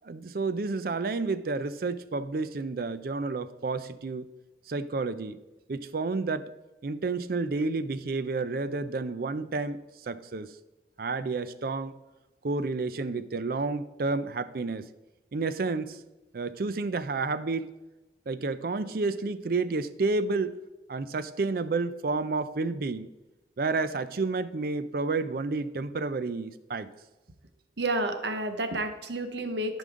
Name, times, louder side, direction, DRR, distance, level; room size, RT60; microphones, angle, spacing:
voice 1, 0.0-4.3 4.7-5.4 5.7-6.5 6.8-10.5 11.0-11.9 12.4-14.8 15.3-16.0 16.3-17.7 18.3-20.6 20.9-23.1 23.6-26.9, right 3 dB, 55° right, 14 dB, 0.5 m, -30 dB
voice 2, 27.8-29.8, right 2 dB, 75° right, 8 dB, 1.0 m, -30 dB
13.5 x 5.4 x 3.7 m, 1.1 s
head